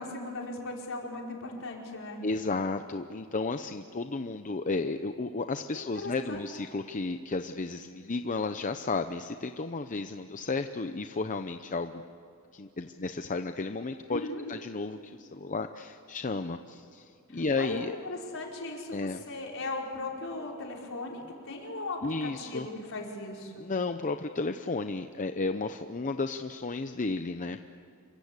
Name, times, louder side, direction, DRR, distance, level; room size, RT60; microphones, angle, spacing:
voice 1, 0.0-2.2 5.7-6.5 14.1-14.5 17.3-17.8 18.0-23.7, left 2 dB, 65° left, -1 dB, 5.3 m, -38 dB
voice 2, 2.2-12.0 12.5-17.9 18.9-19.2 22.0-22.7 23.6-27.7, left 3 dB, 35° left, 8 dB, 0.7 m, -33 dB
28.0 x 24.0 x 8.3 m, 2.6 s
head